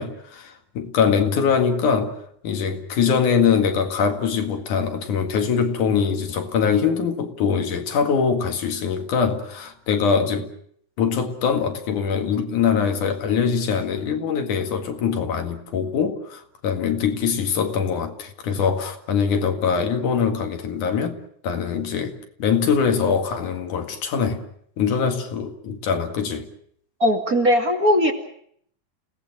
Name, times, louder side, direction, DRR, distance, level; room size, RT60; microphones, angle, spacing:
voice 1, 0.0-2.2 2.4-10.5 11.0-21.2 21.4-24.4 24.8-26.5, left 6 dB, 75° left, 3.4 m, -23 dB
voice 2, 27.0-28.1, equal, 30° right, 2.5 m, -18 dB
29.5 x 18.0 x 7.7 m
omnidirectional pair, 3.7 m